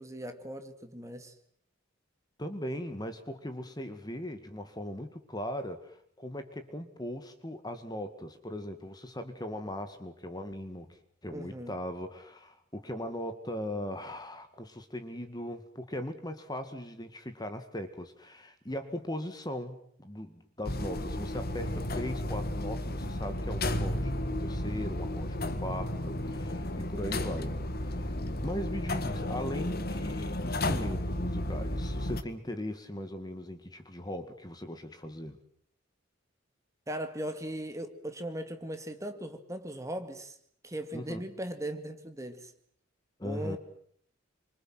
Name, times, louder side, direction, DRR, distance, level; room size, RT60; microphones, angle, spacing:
voice 1, 0.0-1.3 11.3-11.8 36.9-40.4 40.6-42.5 43.2-43.6, right 1 dB, 15° right, 7 dB, 2.2 m, -38 dB
voice 2, 2.4-28.2 28.4-35.4 40.9-41.3 43.2-43.6, left 1 dB, 20° left, 8 dB, 2.0 m, -39 dB
sound 1, 20.6-32.2, left 1 dB, 50° left, 1.7 m, -33 dB
28.0 x 25.5 x 7.8 m, 0.64 s
head